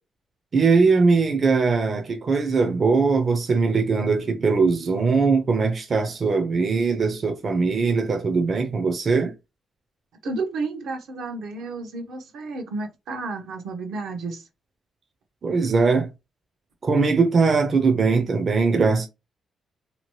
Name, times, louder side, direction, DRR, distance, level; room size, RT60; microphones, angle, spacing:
voice 1, 0.5-9.3 15.4-16.1 16.8-19.1, right 4 dB, 45° right, 0.5 m, -21 dB
voice 2, 10.2-14.4, right 3 dB, 85° right, 0.8 m, -31 dB
2.8 x 2.2 x 3.0 m
cardioid pair, 100°, 0 cm